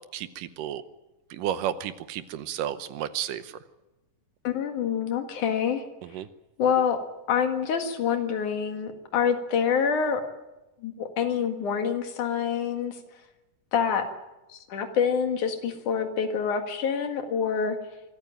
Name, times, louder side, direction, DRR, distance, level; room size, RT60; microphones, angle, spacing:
voice 1, 0.1-0.8 1.3-3.6 6.0-6.3, right 11 dB, 85° right, 12 dB, 2.5 m, -32 dB
voice 2, 4.4-5.8 6.6-7.0 7.3-10.2 10.8-13.0 13.7-14.1 14.7-17.8, left 7 dB, 70° left, 6 dB, 3.2 m, -26 dB
25.0 x 14.0 x 9.0 m, 1.0 s
omnidirectional pair, 3.8 m